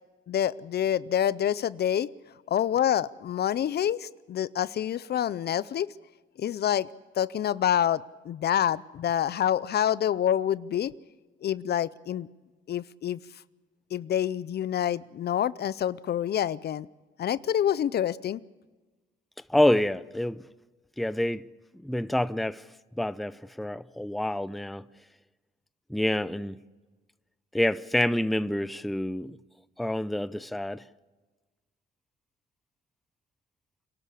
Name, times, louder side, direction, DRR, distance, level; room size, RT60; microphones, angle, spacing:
voice 1, 0.3-5.9 6.4-6.9 7.1-10.9 11.4-12.3 12.7-13.4 13.9-16.9 17.2-18.4, left 10 dB, 55° left, 0.5 m, -27 dB
voice 2, 19.5-20.5 21.0-21.5 21.7-22.6 23.0-24.8 25.9-26.6 27.5-29.4 29.8-30.8, left 1 dB, ahead, 0.6 m, -27 dB
27.5 x 12.5 x 8.5 m
cardioid pair, 90°, 20 cm